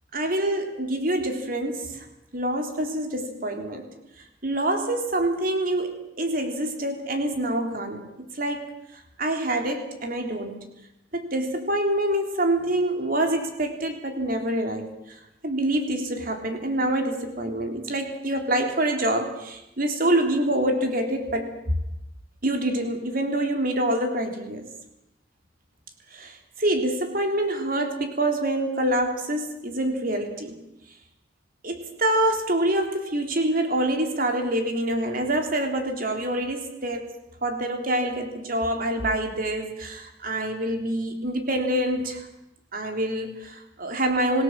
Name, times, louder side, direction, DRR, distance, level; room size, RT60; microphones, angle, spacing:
voice 1, 0.1-2.0 2.3-3.9 4.4-8.0 8.4-8.6 9.2-10.6 11.1-14.9 15.4-21.5 22.4-24.6 26.1-30.6 31.6-37.1 37.4-42.2 42.7-44.4, right 1 dB, 50° right, 5 dB, 3.4 m, -26 dB
26.5 x 16.5 x 7.4 m, 0.90 s
head